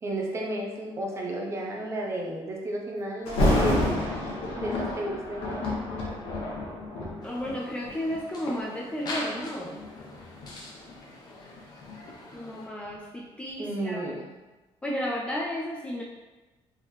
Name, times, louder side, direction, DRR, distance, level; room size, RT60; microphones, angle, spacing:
voice 1, 0.0-3.9 4.6-5.4 13.6-14.3, right 1 dB, 25° right, -1 dB, 0.7 m, -32 dB
Thunder, 3.3-8.2 8.9-9.1 9.8-12.6 12.9-13.0, left 1 dB, 60° left, 1.2 m, -29 dB
sound 1, 7.2-12.7, left 2 dB, 40° left, 0.8 m, -41 dB
voice 2, 7.2-9.8 12.3-14.0 14.8-16.0, equal, 10° left, -2 dB, 0.3 m, -33 dB
4.5 x 3.5 x 3.1 m, 1.2 s
cardioid pair, 175°, 11 cm